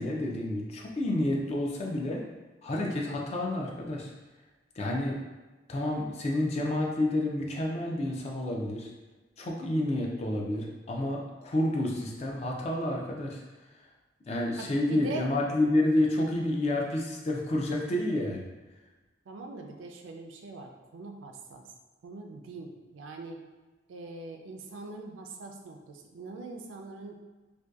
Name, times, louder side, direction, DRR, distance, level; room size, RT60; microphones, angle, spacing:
voice 1, 0.0-2.2 2.6-4.1 4.8-5.2 5.7-8.9 9.4-13.4 14.3-18.4, left 1 dB, 35° left, -1 dB, 0.3 m, -29 dB
voice 2, 14.6-15.3 19.3-21.6 22.0-23.4 23.9-27.2, right 3 dB, 85° right, 3 dB, 0.3 m, -42 dB
2.6 x 2.2 x 2.3 m, 1.2 s
head